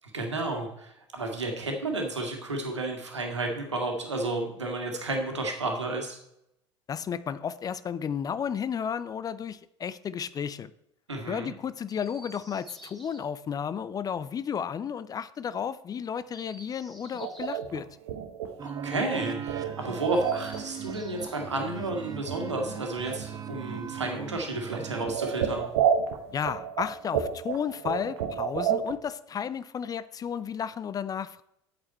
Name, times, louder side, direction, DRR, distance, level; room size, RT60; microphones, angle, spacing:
voice 1, 0.1-6.2 11.1-11.5 18.6-25.7, right 2 dB, 80° right, 3 dB, 1.8 m, -32 dB
voice 2, 6.9-10.7 11.3-17.9 26.3-31.4, left 7 dB, 25° left, 16 dB, 0.5 m, -33 dB
Chirp tweet, 11.9-13.2 16.2-17.6 20.0-21.5 22.9-24.0 25.0-26.0, right 1 dB, ahead, 3.5 m, -53 dB
sound 1, 17.1-20.6 20.9-21.6 21.9-22.0 22.3-23.4 23.7-24.0 24.4-24.5 24.7-28.9, right 8 dB, 65° right, 1.1 m, -31 dB
sound 2, 18.6-25.2, right 8 dB, 25° right, 0.8 m, -39 dB
8.6 x 8.5 x 4.3 m, 0.78 s
figure-of-eight pair, 70°, 15 cm